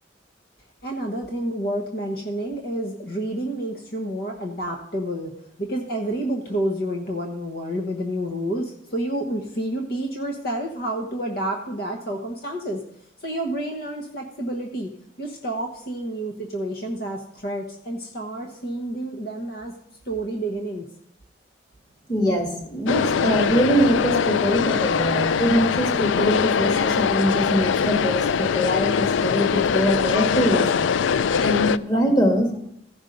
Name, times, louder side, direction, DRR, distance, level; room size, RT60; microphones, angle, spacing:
voice 1, 0.8-5.3 5.6-12.8 13.2-14.9 15.2-19.7 20.0-20.9, right 1 dB, 50° left, 1 dB, 1.1 m, -29 dB
voice 2, 22.1-30.8 31.4-32.5, equal, 20° left, 1 dB, 1.9 m, -23 dB
sound 1, 22.9-31.8, left 6 dB, 85° left, 0.4 m, -22 dB
15.0 x 5.4 x 5.3 m, 0.73 s
head